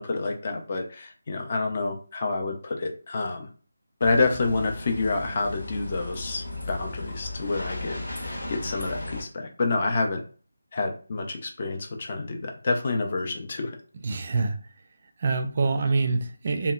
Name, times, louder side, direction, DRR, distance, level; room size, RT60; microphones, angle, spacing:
voice 1, 0.0-3.5 4.0-10.2 10.7-13.8, left 3 dB, 35° left, 2 dB, 0.4 m, -28 dB
sound 1, 4.0-9.2, left 2 dB, 55° left, 1.0 m, -36 dB
voice 2, 14.0-14.6 15.2-16.7, right 3 dB, 40° right, 7 dB, 0.4 m, -25 dB
2.7 x 2.0 x 2.3 m, 0.39 s
figure-of-eight pair, 155°, 0 cm